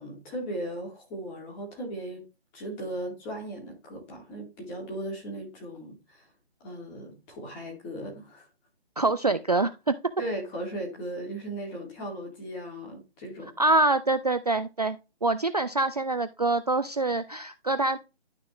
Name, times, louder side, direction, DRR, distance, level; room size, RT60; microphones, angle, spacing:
voice 1, 0.0-2.2 2.5-6.3 6.6-8.5 10.2-13.5, right 1 dB, 10° left, 2.1 m, -37 dB
voice 2, 9.0-10.1 13.6-18.0, right 2 dB, 40° right, 0.4 m, -25 dB
12.0 x 4.3 x 3.0 m
figure-of-eight pair, 165°, 32 cm